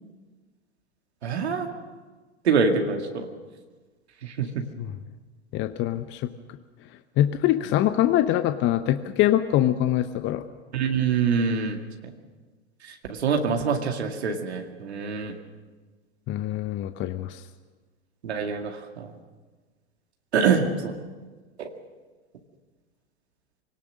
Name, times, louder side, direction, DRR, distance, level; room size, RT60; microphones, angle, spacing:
voice 1, 1.2-1.7 2.4-3.3 4.2-4.6 10.7-11.8 13.1-15.4 18.2-19.1 20.3-20.9 21.6-21.7, right 5 dB, 75° right, 3 dB, 2.2 m, -25 dB
voice 2, 5.5-6.3 7.2-10.4 16.3-17.4, left 12 dB, 35° left, 10 dB, 0.9 m, -24 dB
24.0 x 18.0 x 6.4 m, 1.4 s
hypercardioid pair, 95°, 33 cm